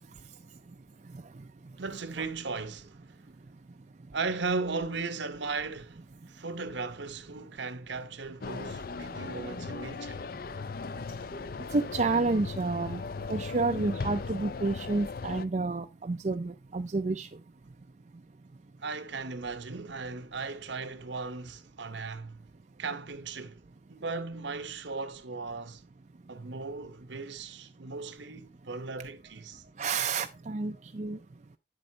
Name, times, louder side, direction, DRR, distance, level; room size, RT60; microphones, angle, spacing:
voice 1, 1.8-3.0 4.1-6.0 6.3-10.2 18.8-22.5 22.8-23.6 23.9-25.8 26.3-29.6, right 4 dB, 70° right, 0.9 m, -37 dB
sound 1, 8.4-15.5, left 4 dB, 50° left, 0.5 m, -38 dB
voice 2, 11.7-13.0 13.3-17.3 29.8-31.2, right 3 dB, 40° right, 0.4 m, -30 dB
8.8 x 7.7 x 2.8 m
head